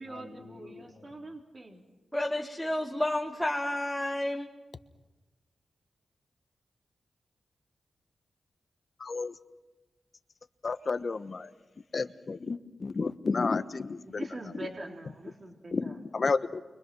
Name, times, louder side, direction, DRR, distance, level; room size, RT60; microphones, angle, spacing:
voice 1, 0.0-1.8 14.1-15.9, right 2 dB, 40° right, 1 dB, 3.7 m, -43 dB
voice 2, 2.1-4.5, left 1 dB, 5° left, 1 dB, 1.7 m, -30 dB
voice 3, 9.0-9.3 10.6-11.5 11.9-14.2 15.7-16.6, left 4 dB, 50° left, 10 dB, 1.2 m, -31 dB
29.5 x 24.0 x 6.2 m, 1.1 s
cardioid pair, 70°, 0 cm